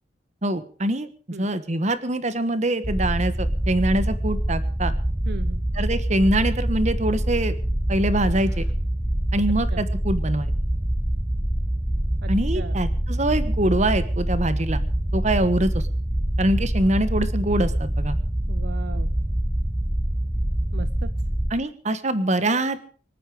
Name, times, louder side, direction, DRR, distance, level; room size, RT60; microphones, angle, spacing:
voice 1, 0.4-1.1 1.4-4.9 5.7-7.5 7.9-8.7 9.3-10.5 12.3-14.8 15.1-15.8 16.4-18.2 21.5-22.9, right 1 dB, 40° right, 12 dB, 1.4 m, -24 dB
sound 1, 2.8-21.5, right 1 dB, 10° right, 0.8 m, -25 dB
sound 2, 5.1-5.6 5.9-6.0 8.2-8.8, left 1 dB, 85° left, 5.4 m, -52 dB
voice 2, 5.3-5.6 9.7-9.8 12.2-12.8 18.5-19.1 20.7-21.1, right 3 dB, 65° right, 12 dB, 0.7 m, -37 dB
25.5 x 9.2 x 5.0 m, 0.41 s
head